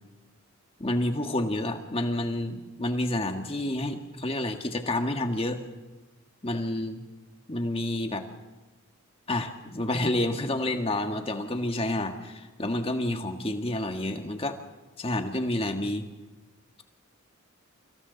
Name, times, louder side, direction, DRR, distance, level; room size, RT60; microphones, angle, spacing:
voice 1, 0.8-5.6 6.4-7.0 7.5-8.2 9.3-14.6 15.0-16.0, left 1 dB, 25° left, 5 dB, 1.7 m, -29 dB
29.0 x 26.0 x 4.1 m, 1.2 s
head